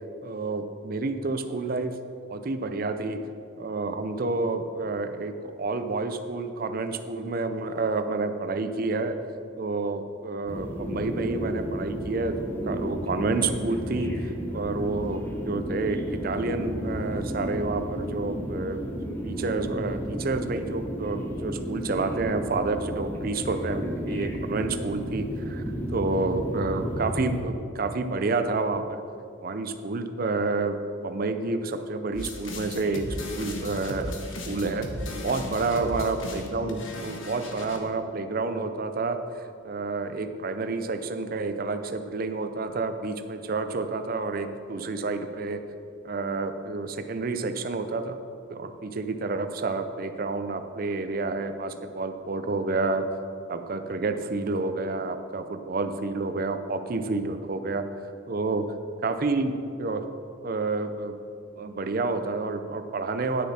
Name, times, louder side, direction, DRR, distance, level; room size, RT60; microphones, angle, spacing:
voice 1, 0.2-1.9 2.3-3.2 3.6-9.2 9.6-12.3 12.7-14.1 14.5-18.8 19.2-25.6 25.9-29.0 29.4-30.8 31.0-33.0 33.3-34.1 34.5-34.9 35.2-39.2 39.6-45.6 46.0-48.2 48.5-53.0 53.5-57.8 58.3-58.6 59.0-60.0 60.4-61.1 61.6-63.5, right 3 dB, 45° right, 8 dB, 0.5 m, -29 dB
sound 1, 10.5-27.4, equal, 10° left, 0.9 m, -33 dB
sound 2, 32.1-37.8, left 1 dB, 70° left, 1.1 m, -36 dB
9.4 x 6.6 x 4.3 m, 2.5 s
head